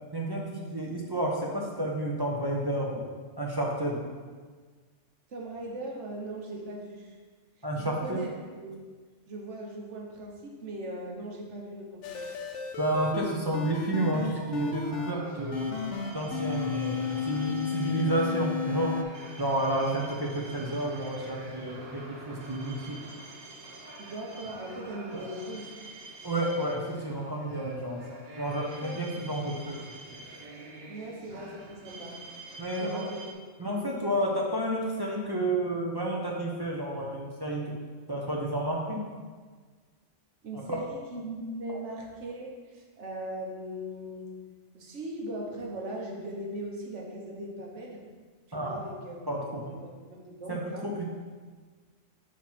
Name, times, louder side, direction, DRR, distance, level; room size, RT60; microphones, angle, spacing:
voice 1, 0.1-3.1 3.4-3.9 7.6-8.2 12.8-15.8 16.1-18.9 19.4-23.0 25.1-25.2 26.2-28.0 28.4-29.8 32.6-33.0 33.6-37.8 38.1-39.0 41.7-41.8 48.5-48.8 49.3-49.7 50.5-51.0, right 1 dB, 25° right, -3 dB, 0.6 m, -30 dB
voice 2, 5.3-7.1 7.8-8.3 8.6-8.8 9.3-12.3 19.8-19.9 24.0-25.7 28.8-29.0 30.9-32.2 32.8-33.2 33.6-34.2 40.4-44.3 44.7-48.0 48.5-49.2 49.4-50.9, right 1 dB, 80° right, -1 dB, 1.3 m, -39 dB
sound 1, 12.0-15.1 15.5-19.0, left 6 dB, 80° left, 0.9 m, -33 dB
sound 2, 14.2-33.3, right 2 dB, 60° right, 1.1 m, -46 dB
4.6 x 4.5 x 5.6 m, 1.5 s
omnidirectional pair, 1.2 m